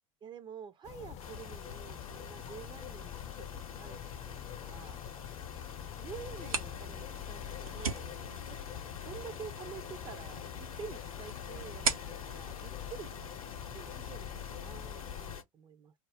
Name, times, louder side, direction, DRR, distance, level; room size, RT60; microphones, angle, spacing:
voice 1, 0.2-5.0 6.0-8.1 8.5-8.6 9.0-13.1 13.4-15.9, right 7 dB, 25° right, 0.4 m, -49 dB
sound 1, 0.8-15.4, left 11 dB, 40° left, 0.4 m, -45 dB
sound 2, 1.2-15.4, left 5 dB, 90° left, 0.7 m, -47 dB
sound 3, 6.2-13.7, right 5 dB, 90° right, 0.6 m, -41 dB
2.4 x 2.1 x 3.3 m
hypercardioid pair, 80°, 18 cm